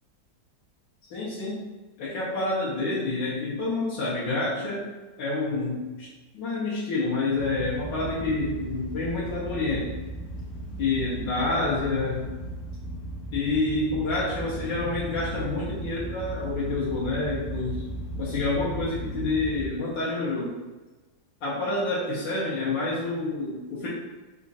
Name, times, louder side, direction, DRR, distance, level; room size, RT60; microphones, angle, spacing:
voice 1, 1.1-1.7 2.0-4.9 5.2-6.1 6.3-9.9 10.8-12.2 13.3-17.8 18.2-20.6 21.4-23.9, left 3 dB, 80° left, -9 dB, 1.6 m, -28 dB
sound 1, 7.4-19.7, right 1 dB, 50° left, 1.0 m, -36 dB
4.3 x 2.4 x 4.0 m, 1.2 s
omnidirectional pair, 2.0 m